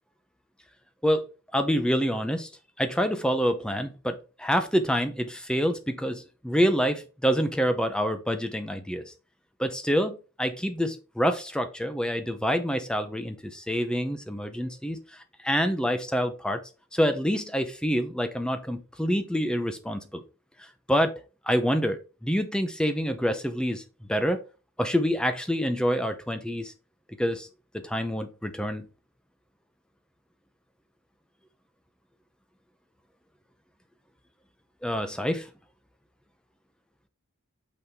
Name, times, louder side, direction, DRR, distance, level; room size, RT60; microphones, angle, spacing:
voice 1, 1.5-2.5 2.8-9.1 9.6-15.0 15.4-16.6 16.9-20.2 20.6-21.1 21.5-23.8 24.1-24.4 24.8-26.7 27.2-27.5 27.7-28.9 34.8-35.5, equal, 5° left, 0.7 m, -27 dB
6.2 x 5.6 x 3.6 m
head